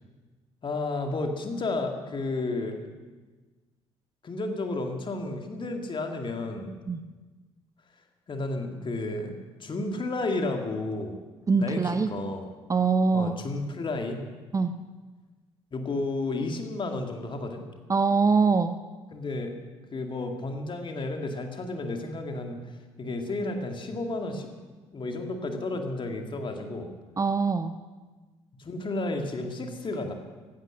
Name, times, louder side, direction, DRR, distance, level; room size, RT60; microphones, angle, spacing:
voice 1, 0.6-2.9 4.2-6.8 8.3-11.2 11.6-12.5 13.1-14.3 15.7-17.6 19.1-19.5 19.9-24.5 24.9-26.9 28.6-30.1, left 2 dB, 35° left, 4 dB, 2.2 m, -32 dB
voice 2, 11.5-12.1 12.7-13.4 14.5-14.7 17.9-18.8 27.2-27.8, right 4 dB, 20° right, 11 dB, 0.6 m, -23 dB
16.0 x 12.5 x 6.5 m, 1.3 s
figure-of-eight pair, 50°, 15 cm